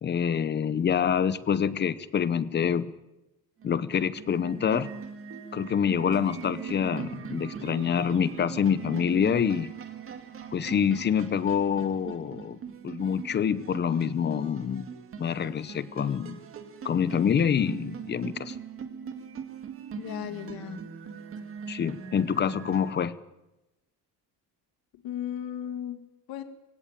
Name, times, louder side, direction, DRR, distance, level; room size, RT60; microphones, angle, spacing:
voice 1, 0.0-2.9 3.6-4.9 5.5-9.7 10.5-12.6 12.8-14.9 15.2-16.4 16.8-18.6 21.7-23.2, left 7 dB, 25° left, 16 dB, 0.8 m, -26 dB
sound 1, 3.6-22.9, right 7 dB, 30° right, 1.9 m, -41 dB
voice 2, 20.0-20.8 24.9-26.4, left 10 dB, 60° left, 8 dB, 2.3 m, -36 dB
23.0 x 17.0 x 9.0 m, 0.97 s
cardioid pair, 180°, 41 cm